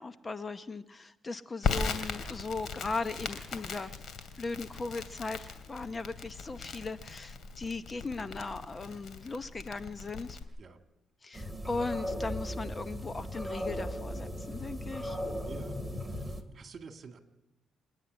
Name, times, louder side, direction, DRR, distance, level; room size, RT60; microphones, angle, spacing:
voice 1, 0.0-3.9 4.4-10.4 11.2-15.2, left 3 dB, 30° left, 12 dB, 0.8 m, -38 dB
Crackle, 1.6-10.4, left 5 dB, 65° left, 2.6 m, -38 dB
sound 1, 11.3-16.4, equal, ahead, 2.3 m, -37 dB
voice 2, 15.5-15.8 16.1-17.2, right 5 dB, 45° right, 5 dB, 2.2 m, -49 dB
27.0 x 9.9 x 9.7 m, 0.98 s
cardioid pair, 90°, 0 cm